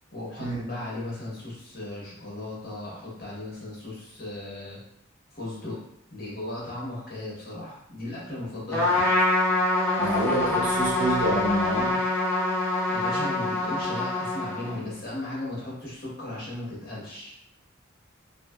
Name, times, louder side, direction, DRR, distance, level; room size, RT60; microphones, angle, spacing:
voice 1, 0.1-4.8 5.3-5.8 6.1-9.3 12.9-17.3, left 1 dB, 50° left, -6 dB, 1.0 m, -36 dB
Trumpet, 8.7-14.9, left 2 dB, 10° left, 0.6 m, -25 dB
voice 2, 10.0-12.0, right 1 dB, 75° right, -4 dB, 0.9 m, -27 dB
2.7 x 2.4 x 2.2 m, 0.76 s
head